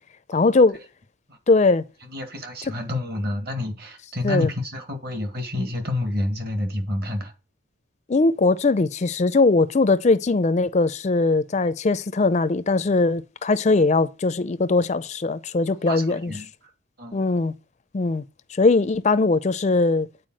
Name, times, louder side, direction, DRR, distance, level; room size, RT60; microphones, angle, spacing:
voice 1, 0.3-0.8 1.5-1.8 2.6-2.7 4.2-4.5 8.1-16.4 17.1-17.5 17.9-18.2 18.5-20.1, left 3 dB, 35° left, 0.4 m, -20 dB
voice 2, 2.1-7.3 15.9-16.5 17.0-17.2, left 1 dB, 50° right, 2.0 m, -28 dB
9.1 x 4.6 x 7.6 m
head